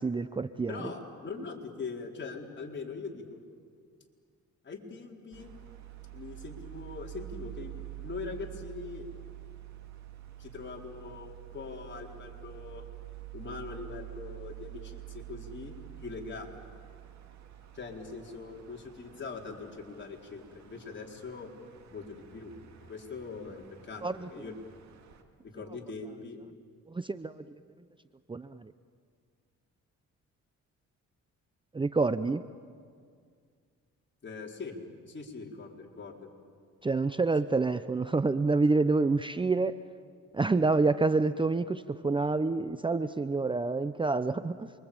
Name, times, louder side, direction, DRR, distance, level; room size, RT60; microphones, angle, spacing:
voice 1, 0.0-0.9 24.0-24.3 26.9-27.6 28.3-28.7 31.7-32.4 36.8-39.8 40.3-44.7, right 3 dB, 15° right, 12 dB, 0.7 m, -28 dB
voice 2, 0.7-3.4 4.6-5.5 6.1-9.1 10.4-12.8 13.3-16.5 17.7-21.5 21.9-22.5 22.8-24.0 24.3-24.6 25.5-26.4 34.2-34.8 35.1-36.3, left 4 dB, 40° left, 0 dB, 4.5 m, -42 dB
sound 1, 5.3-25.2, right 16 dB, 65° right, 2.9 m, -47 dB
28.5 x 24.0 x 8.8 m, 2.1 s
cardioid pair, 90°, 30 cm